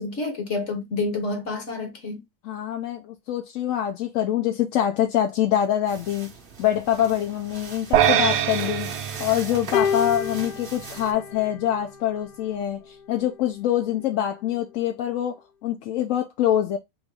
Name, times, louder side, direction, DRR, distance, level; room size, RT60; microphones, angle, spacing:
voice 1, 0.0-2.2, left 3 dB, 50° left, 1.2 m, -29 dB
voice 2, 2.4-6.3 6.6-8.9 9.2-16.8, left 11 dB, 65° left, 0.8 m, -25 dB
sound 1, 5.9-11.1, right 4 dB, 40° right, 0.8 m, -41 dB
sound 2, 7.9-10.4, right 9 dB, 80° right, 1.1 m, -23 dB
sound 3, 9.7-12.2 13.2-13.4, left 7 dB, 80° left, 1.2 m, -29 dB
3.7 x 2.6 x 4.6 m
omnidirectional pair, 1.8 m